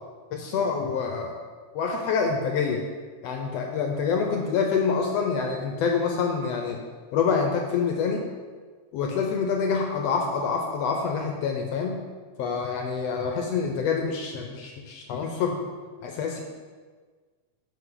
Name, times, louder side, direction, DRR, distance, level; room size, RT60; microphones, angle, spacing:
voice 1, 0.3-1.3 1.7-2.8 3.2-6.8 7.1-8.2 8.9-12.0 12.4-15.6 16.0-16.4, left 5 dB, 75° left, 2 dB, 1.5 m, -26 dB
9.3 x 5.5 x 3.8 m, 1.5 s
omnidirectional pair, 3.5 m